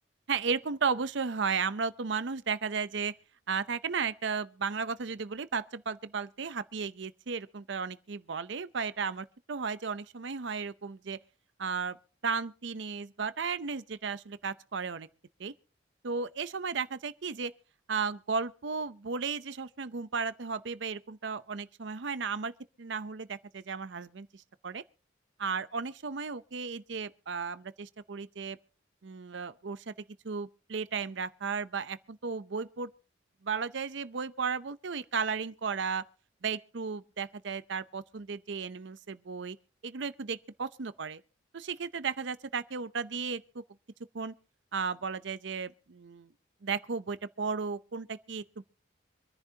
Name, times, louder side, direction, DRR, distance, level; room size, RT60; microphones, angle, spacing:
voice 1, 0.3-3.1 3.5-11.2 11.6-12.0 12.2-15.1 15.4-15.5 16.0-17.5 17.9-22.5 22.8-24.8 25.4-28.6 29.0-29.9 30.2-32.9 33.4-36.0 36.4-39.6 39.8-41.2 41.5-43.6 44.1-44.3 44.7-46.3 46.6-48.6, right 5 dB, 65° right, 0.6 m, -34 dB
25.5 x 10.5 x 2.8 m
head